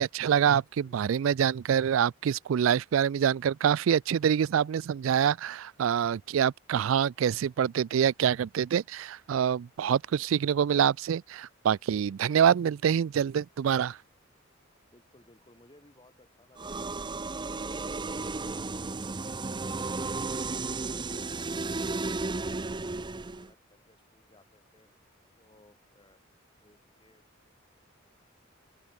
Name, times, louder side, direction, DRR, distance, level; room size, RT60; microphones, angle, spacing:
voice 1, 0.0-14.0, right 8 dB, 75° right, 0.3 m, -26 dB
voice 2, 0.8-1.4 10.1-10.2 14.9-24.9 25.4-26.2 26.6-27.5, left 1 dB, 25° left, 5.9 m, -62 dB
sound 1, 16.6-23.5, right 3 dB, 25° right, 0.7 m, -34 dB
open air
head